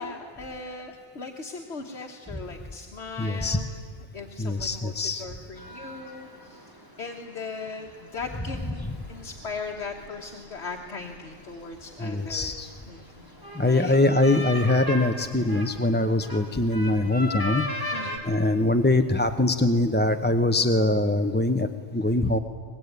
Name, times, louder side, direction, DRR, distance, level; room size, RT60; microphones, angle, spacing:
voice 1, 0.0-3.7 4.1-6.7 7.0-12.5 12.9-13.3 13.5-14.0 17.9-18.2, left 4 dB, 75° left, 2 dB, 1.7 m, -38 dB
voice 2, 3.2-3.6 4.4-5.2 8.9-9.0 12.0-12.7 13.5-17.6 18.2-22.4, left 2 dB, 10° left, 8 dB, 0.7 m, -23 dB
sound 1, 5.6-18.2, equal, 20° right, 3.1 m, -39 dB
23.5 x 20.5 x 9.5 m, 2.1 s
omnidirectional pair, 1.1 m